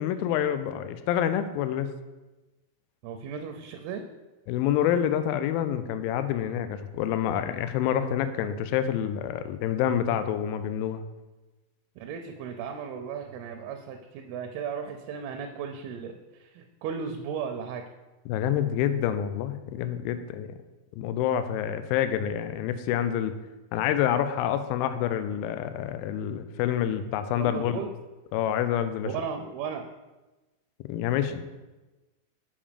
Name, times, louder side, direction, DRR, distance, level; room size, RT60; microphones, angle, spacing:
voice 1, 0.0-1.9 4.5-11.0 18.3-20.5 21.0-23.3 23.7-27.8 28.3-29.1 30.9-31.4, left 10 dB, 80° left, 10 dB, 2.2 m, -27 dB
voice 2, 3.0-4.0 12.0-17.8 27.4-27.9 29.0-29.9, right 6 dB, 85° right, 5 dB, 2.5 m, -35 dB
7.0 x 5.3 x 5.0 m, 1.1 s
omnidirectional pair, 4.3 m